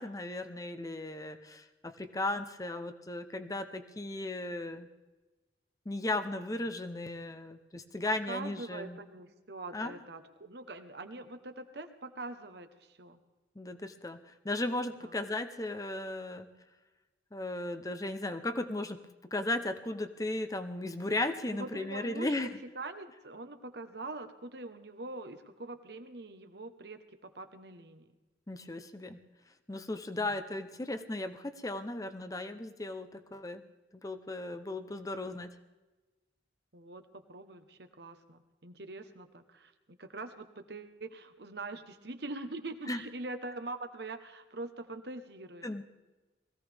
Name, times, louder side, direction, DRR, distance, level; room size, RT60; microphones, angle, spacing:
voice 1, 0.0-4.9 5.9-9.0 9.7-10.0 13.6-14.2 14.4-16.5 17.3-19.0 19.3-22.5 28.5-29.2 29.7-33.7 33.9-35.5 42.9-43.0 45.6-45.8, left 2 dB, 20° left, 8 dB, 0.8 m, -36 dB
voice 2, 8.0-13.2 15.0-15.1 21.5-28.1 30.2-30.3 36.7-45.6, right 2 dB, 60° right, 8 dB, 1.1 m, -43 dB
21.0 x 16.0 x 3.5 m, 1.2 s
head